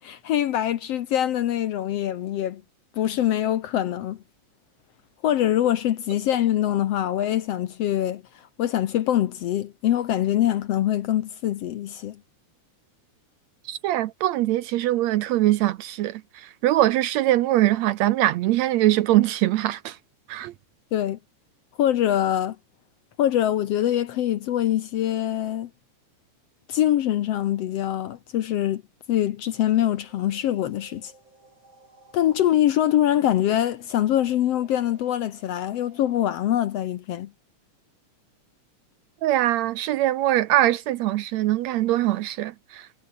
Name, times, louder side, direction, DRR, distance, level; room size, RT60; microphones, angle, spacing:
voice 1, 0.0-2.6 3.0-4.2 5.2-12.2 20.9-21.2 21.8-22.6 23.2-25.7 26.7-28.8 29.1-31.1 32.1-37.3, left 12 dB, 70° left, 1.7 m, -24 dB
voice 2, 13.7-20.0 20.3-20.5 39.2-42.9, right 15 dB, 75° right, 1.7 m, -22 dB
sound 1, 29.5-36.4, right 2 dB, 35° right, 8.3 m, -56 dB
omnidirectional pair, 3.6 m